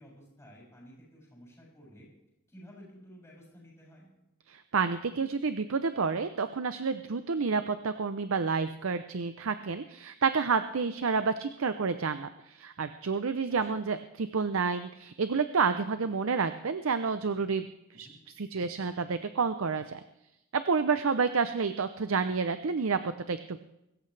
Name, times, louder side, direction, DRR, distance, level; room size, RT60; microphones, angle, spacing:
voice 1, 0.0-2.1 2.5-4.1 13.5-13.8 17.9-18.2, equal, 10° left, -5 dB, 6.8 m, -53 dB
voice 2, 4.5-17.7 17.9-18.1 18.4-20.0 20.5-23.6, right 5 dB, 65° right, 10 dB, 0.6 m, -29 dB
24.0 x 14.0 x 3.3 m, 0.90 s
head